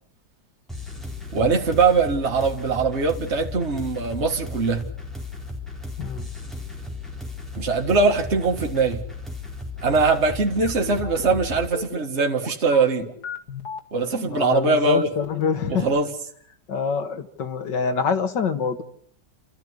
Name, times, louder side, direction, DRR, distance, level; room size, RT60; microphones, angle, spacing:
sound 1, 0.7-11.7, left 3 dB, ahead, 4.0 m, -35 dB
voice 1, 1.3-4.9 7.5-9.0 9.8-13.1 13.9-15.1 15.7-16.1, right 4 dB, 40° right, 2.0 m, -21 dB
voice 2, 6.0-6.3 14.2-15.9 16.7-18.8, left 5 dB, 85° left, 2.2 m, -25 dB
sound 2, 10.6-15.8, left 5 dB, 65° left, 2.8 m, -35 dB
29.0 x 13.5 x 9.6 m
omnidirectional pair, 1.9 m